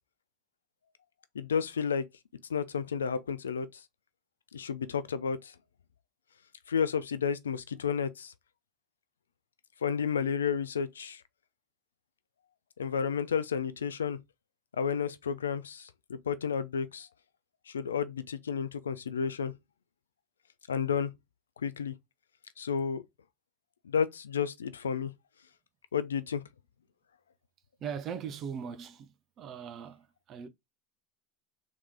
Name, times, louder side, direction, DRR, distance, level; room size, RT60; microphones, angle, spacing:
voice 1, 1.3-2.1 2.5-3.8 4.5-5.5 6.7-8.3 9.8-11.2 12.8-14.2 14.8-17.1 17.7-19.5 20.7-21.1 21.6-21.9 22.6-23.0 23.8-25.1 25.9-26.4, left 6 dB, 85° left, 0.4 m, -31 dB
voice 2, 27.8-29.1 29.4-30.5, right 7 dB, 45° right, 0.8 m, -39 dB
3.7 x 3.2 x 3.5 m
hypercardioid pair, 80°, 0 cm